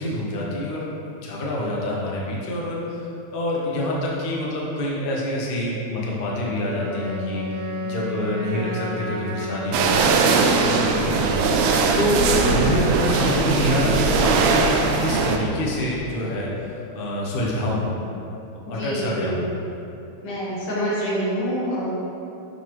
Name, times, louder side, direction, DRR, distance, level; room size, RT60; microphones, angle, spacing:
voice 1, 0.0-7.4 7.9-11.3 11.9-12.2 12.5-17.9 18.7-19.5, left 1 dB, 40° left, -4 dB, 0.8 m, -26 dB
Wind instrument woodwind instrument, 6.7-10.7, left 2 dB, 60° right, 0.9 m, -31 dB
sound 1, 9.7-15.4, right 4 dB, 80° right, 1.4 m, -20 dB
voice 2, 12.2-12.5 18.7-19.5 20.2-21.9, equal, 85° left, -7 dB, 2.6 m, -26 dB
11.0 x 4.1 x 3.1 m, 2.8 s
omnidirectional pair, 2.3 m